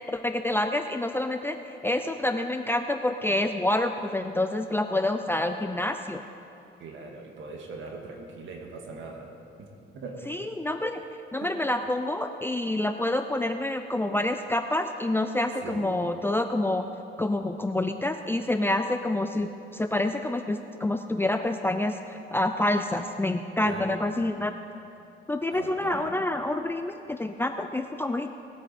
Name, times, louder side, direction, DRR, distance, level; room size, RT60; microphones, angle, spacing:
voice 1, 0.1-1.6 1.8-6.2 10.3-11.0 11.3-16.8 17.2-24.5 25.3-28.4, left 1 dB, 10° left, 6 dB, 0.5 m, -27 dB
voice 2, 6.8-9.3 9.6-10.3 11.4-11.5 15.6-15.9 23.6-23.9 25.5-26.1, right 4 dB, 75° right, 1 dB, 1.9 m, -40 dB
19.5 x 8.3 x 4.3 m, 2.7 s
cardioid pair, 90°, 20 cm